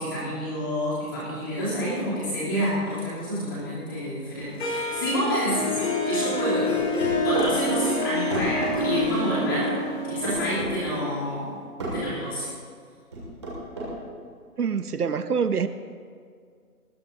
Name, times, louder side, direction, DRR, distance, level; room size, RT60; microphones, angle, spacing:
voice 1, 0.0-5.8 6.1-6.7 7.2-9.8 10.0-11.5 11.9-12.5, equal, 15° left, -10 dB, 3.2 m, -28 dB
Harp, 4.6-11.5, left 1 dB, 45° left, 2.6 m, -27 dB
sound 1, 6.7-7.5 8.3-9.1 10.2-10.7 11.8-12.0 13.1-13.9, right 2 dB, 20° right, 2.3 m, -30 dB
voice 2, 14.6-15.7, right 6 dB, 75° right, 12 dB, 0.8 m, -25 dB
20.0 x 15.0 x 2.8 m, 2.1 s
hypercardioid pair, 180°, 47 cm